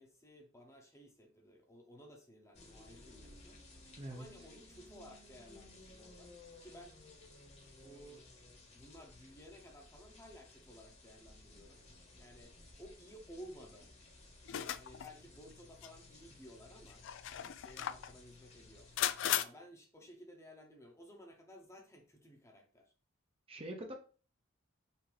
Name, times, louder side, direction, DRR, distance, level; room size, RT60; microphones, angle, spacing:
voice 1, 0.0-3.6 4.1-6.3 6.6-7.0 7.8-8.3 8.7-11.8 12.2-13.9 14.7-18.9 19.4-22.9, equal, 15° left, 2 dB, 0.8 m, -56 dB
sound 1, 2.5-19.2, left 2 dB, 30° left, 1.2 m, -58 dB
voice 2, 4.0-4.3 23.5-23.9, right 1 dB, 30° right, 3 dB, 0.6 m, -44 dB
sound 2, 14.5-15.1 15.8-15.9 16.9-18.1 19.0-19.4, left 11 dB, 65° left, 0.3 m, -36 dB
5.8 x 2.7 x 3.3 m, 0.37 s
head